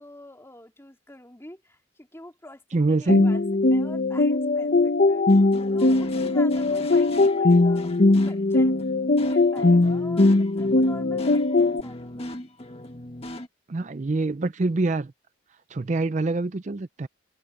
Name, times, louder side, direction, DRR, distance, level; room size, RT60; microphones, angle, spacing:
voice 1, 0.0-3.4 3.7-5.2 5.7-8.8 9.3-12.3, left 1 dB, 15° left, 3.9 m, -45 dB
voice 2, 2.7-3.2 13.7-15.1 15.7-17.1, right 3 dB, 40° right, 0.5 m, -25 dB
sound 1, 3.1-11.8, left 2 dB, 50° left, 0.8 m, -20 dB
sound 2, 5.3-13.5, left 1 dB, 30° left, 1.8 m, -38 dB
head